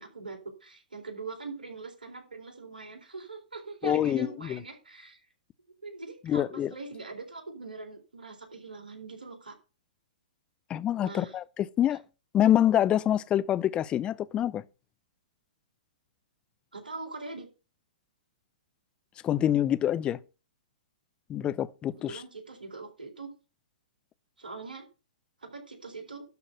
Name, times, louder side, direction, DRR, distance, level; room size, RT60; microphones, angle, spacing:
voice 1, 0.0-5.2 5.8-9.5 11.0-11.3 16.7-17.5 21.9-23.3 24.4-24.9 25.4-26.2, right 3 dB, 85° right, 4.1 m, -42 dB
voice 2, 3.8-4.6 6.2-6.7 10.7-12.0 12.3-14.6 19.2-20.2 21.3-22.2, left 11 dB, 20° left, 0.6 m, -26 dB
12.5 x 4.2 x 7.9 m
figure-of-eight pair, 120°, 5 cm